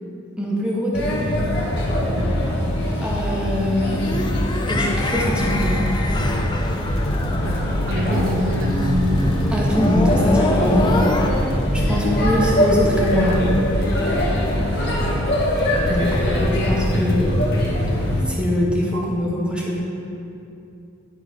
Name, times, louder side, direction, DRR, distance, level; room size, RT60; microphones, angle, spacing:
voice 1, 0.4-1.3 3.0-4.0 4.7-5.8 9.5-10.9 11.7-13.5 15.9-17.3 17.9-18.0 18.3-19.8, left 1 dB, 5° right, -4 dB, 1.1 m, -23 dB
Male speech man speaking / Child speech kid speaking / Chatter, 0.9-18.2, left 1 dB, 50° left, 1.5 m, -22 dB
Oscillating Malfunction, 3.8-11.3, left 2 dB, 20° left, 0.4 m, -26 dB
sound 1, 5.0-17.7, equal, 80° left, 1.3 m, -29 dB
voice 2, 7.4-9.2 15.1-15.2, equal, 70° right, 0 dB, 0.9 m, -26 dB
11.0 x 3.9 x 5.0 m, 2.7 s
head